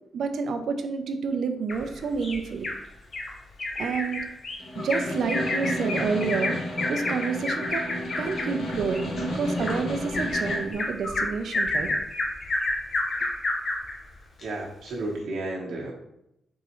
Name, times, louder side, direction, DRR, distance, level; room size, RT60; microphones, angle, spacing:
voice 1, 0.1-2.7 3.8-4.3 4.7-6.6 6.9-7.8 8.2-11.9, right 5 dB, 65° right, 7 dB, 0.4 m, -29 dB
Bird vocalization bird call bird song, 1.7-2.8 3.1-3.3 3.6-13.9 14.4-14.5 14.9-15.0, left 2 dB, 40° left, 0.8 m, -30 dB
Snare drum, 4.6-10.7, left 1 dB, 70° left, 1.1 m, -32 dB
voice 2, 14.4-15.9, right 2 dB, 85° right, -3 dB, 0.9 m, -32 dB
4.1 x 3.6 x 3.0 m, 0.80 s
wide cardioid pair, 175°, 0 cm